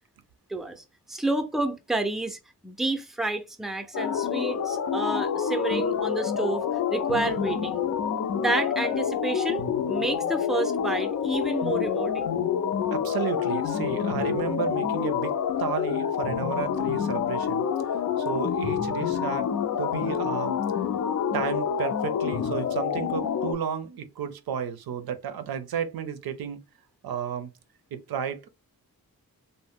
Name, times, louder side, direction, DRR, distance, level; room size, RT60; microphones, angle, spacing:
voice 1, 0.5-6.6 6.9-7.9 8.3-9.6 9.9-12.3, right 2 dB, ahead, 0.5 m, -30 dB
sound 1, 3.9-23.5, left 7 dB, 55° left, 0.5 m, -27 dB
voice 2, 12.9-15.3 15.6-19.5 19.8-20.6 21.3-26.6 27.0-27.5 27.9-28.5, right 8 dB, 90° right, 0.5 m, -33 dB
2.7 x 2.0 x 3.5 m
cardioid pair, 85°, 36 cm